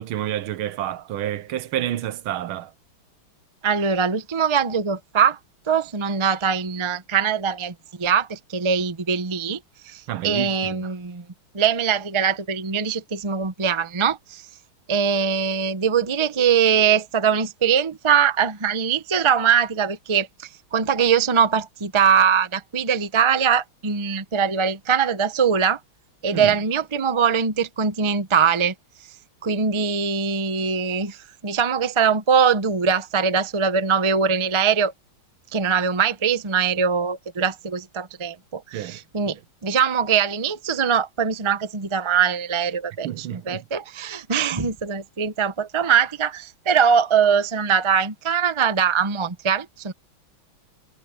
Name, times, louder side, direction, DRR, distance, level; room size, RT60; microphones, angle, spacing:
voice 1, 0.0-2.7 10.1-10.9 26.3-26.6 38.7-39.0 43.0-43.6 44.5-44.6, right 12 dB, 80° right, 1.6 m, -29 dB
voice 2, 3.6-5.4 5.7-11.2 11.5-14.4 14.9-25.8 26.2-28.7 29.4-31.2 31.4-34.9 35.5-39.4 39.6-49.9, right 7 dB, 40° right, 0.4 m, -22 dB
omnidirectional pair, 2.3 m